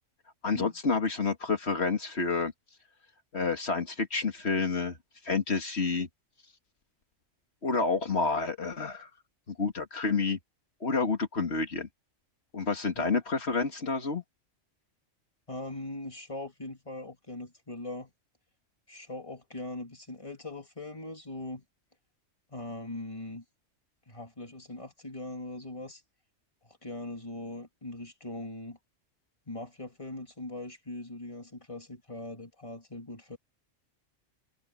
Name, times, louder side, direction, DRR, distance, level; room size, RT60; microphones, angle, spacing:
voice 1, 0.4-2.5 3.3-5.0 5.2-6.1 7.6-9.1 9.5-10.4 10.8-11.9 12.5-14.2, left 4 dB, 55° left, 2.5 m, -29 dB
voice 2, 15.5-18.1 18.9-21.6 22.5-23.4 24.1-26.0 26.6-28.8 29.5-33.4, left 2 dB, 25° left, 3.2 m, -41 dB
omnidirectional pair, 1.3 m